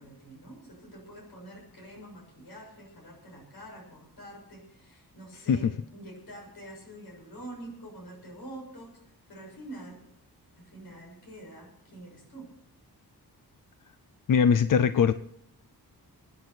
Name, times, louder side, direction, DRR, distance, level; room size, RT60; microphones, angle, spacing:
voice 1, 0.0-5.7 5.9-10.0 10.6-12.5, right 1 dB, 70° left, 0 dB, 6.8 m, -46 dB
voice 2, 14.3-15.1, left 7 dB, 55° left, 14 dB, 0.5 m, -21 dB
25.0 x 9.7 x 4.5 m, 0.72 s
wide cardioid pair, 170°, 39 cm